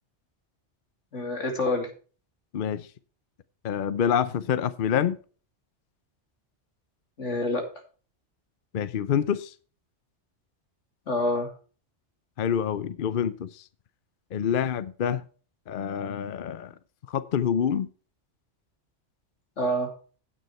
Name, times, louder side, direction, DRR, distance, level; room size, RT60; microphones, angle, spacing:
voice 1, 1.1-1.9 7.2-7.7 11.1-11.5 19.6-19.9, left 1 dB, 85° left, 2.9 m, -27 dB
voice 2, 2.5-2.9 3.6-5.2 8.7-9.5 12.4-13.6 14.3-15.2 15.7-16.7 17.1-17.9, left 8 dB, 55° left, 0.7 m, -27 dB
9.4 x 9.0 x 4.3 m
omnidirectional pair, 1.2 m